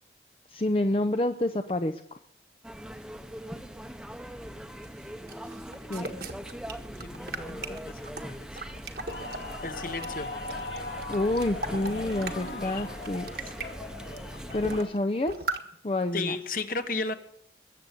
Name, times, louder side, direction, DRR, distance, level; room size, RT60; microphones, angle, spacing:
voice 1, 0.5-2.2 5.9-6.1 11.1-13.3 14.5-15.5 15.8-16.4, left 1 dB, 30° left, 7 dB, 0.6 m, -28 dB
sound 1, 2.6-14.9, equal, 5° right, 0.9 m, -41 dB
sound 2, 4.8-9.5 9.9-12.5 12.9-13.7 14.1-14.2 14.5-15.0 15.3-15.6, right 3 dB, 55° right, 1.4 m, -39 dB
voice 2, 7.0-8.5 8.7-8.8 9.6-10.3 11.8-12.9 16.1-17.1, left 3 dB, 50° left, 8 dB, 1.3 m, -35 dB
sound 3, 9.1-14.9, left 2 dB, 75° left, 3.7 m, -40 dB
21.0 x 7.9 x 8.4 m, 0.72 s
head